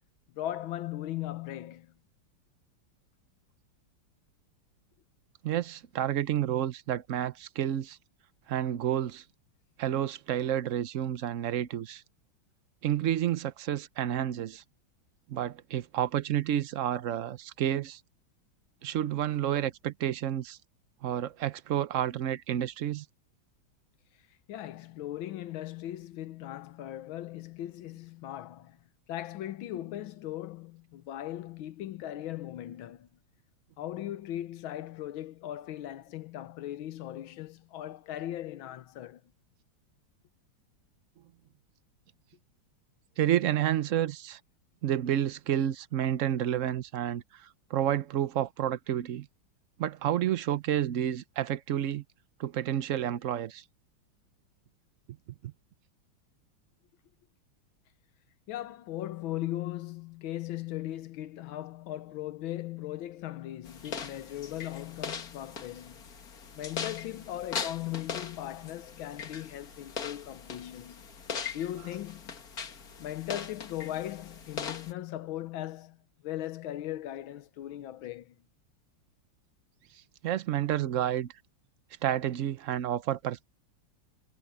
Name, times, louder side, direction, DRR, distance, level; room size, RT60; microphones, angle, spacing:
voice 1, 0.3-1.9 24.5-28.8 29.1-33.1 33.8-39.3 58.5-66.1 66.5-71.1 71.5-72.3 73.0-78.4, left 13 dB, 75° left, 1.6 m, -38 dB
voice 2, 5.4-8.0 8.5-9.2 9.8-12.0 12.8-14.6 15.3-18.0 18.8-20.6 21.0-23.0 43.2-44.4 44.8-49.3 49.8-52.0 52.4-53.6 55.4-55.5 80.2-81.3 82.0-83.4, right 11 dB, 70° right, 0.7 m, -30 dB
sound 1, 63.6-74.9, left 6 dB, 50° left, 2.0 m, -40 dB
omnidirectional pair, 2.2 m